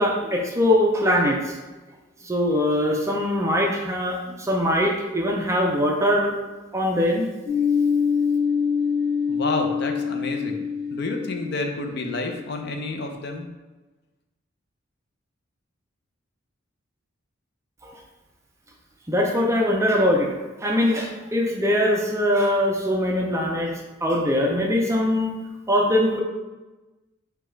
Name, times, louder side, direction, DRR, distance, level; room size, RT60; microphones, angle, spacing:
voice 1, 0.0-1.6 2.2-6.3 6.7-7.3 17.8-17.9 19.1-20.3 20.6-23.7 24.0-25.3 25.7-26.2, left 1 dB, 15° right, -1 dB, 0.5 m, -22 dB
sound 1, 7.5-13.0, left 6 dB, 30° right, 0.9 m, -25 dB
voice 2, 9.3-10.7 10.9-13.5, left 2 dB, 55° left, 3 dB, 0.6 m, -29 dB
5.0 x 2.3 x 4.4 m, 1.2 s
head